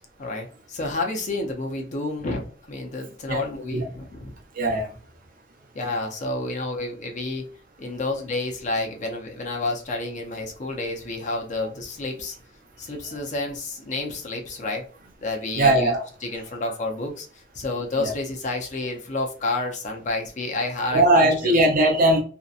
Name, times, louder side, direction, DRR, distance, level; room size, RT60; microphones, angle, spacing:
voice 1, 0.2-4.4 5.7-7.4 7.8-12.3 12.8-14.8 15.2-15.9 16.2-21.6, left 2 dB, 45° left, 0.5 m, -30 dB
voice 2, 4.6-4.9 15.6-16.1 18.0-18.1 20.9-22.2, right 1 dB, 50° right, 0.6 m, -19 dB
2.7 x 2.1 x 2.4 m
head